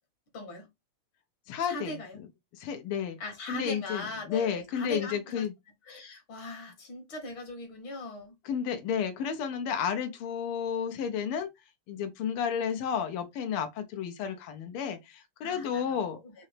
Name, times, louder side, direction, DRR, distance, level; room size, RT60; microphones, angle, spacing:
voice 1, 0.3-0.7 1.7-2.2 3.2-5.4 5.9-8.3 15.4-16.0 16.2-16.3, left 2 dB, 70° left, 1.8 m, -39 dB
voice 2, 1.5-2.0 2.5-3.2 3.5-5.5 8.4-11.5 11.9-16.2, left 7 dB, 90° left, 1.6 m, -32 dB
4.1 x 2.8 x 3.2 m
omnidirectional pair, 2.3 m